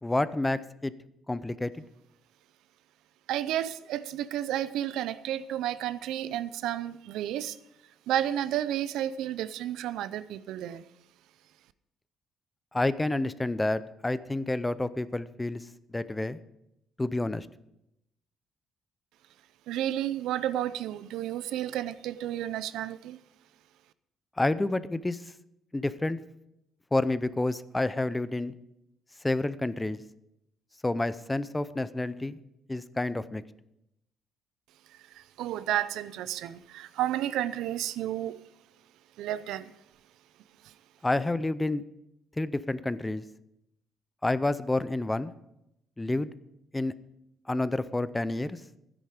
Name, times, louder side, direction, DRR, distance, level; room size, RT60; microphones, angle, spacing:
voice 1, 0.0-0.9 1.3-1.8 12.7-15.6 15.9-16.4 17.0-17.5 24.4-25.2 25.7-26.2 26.9-28.5 29.2-30.0 30.8-32.4 32.7-33.4 41.0-41.8 42.4-43.2 44.2-45.3 46.0-46.3 46.7-46.9 47.5-48.6, left 2 dB, 10° left, 0.5 m, -29 dB
voice 2, 3.3-7.5 8.1-10.8 19.7-23.2 35.4-38.4 39.2-39.6, right 12 dB, 85° right, 0.6 m, -31 dB
13.0 x 10.0 x 5.0 m
cardioid pair, 125°, 0 cm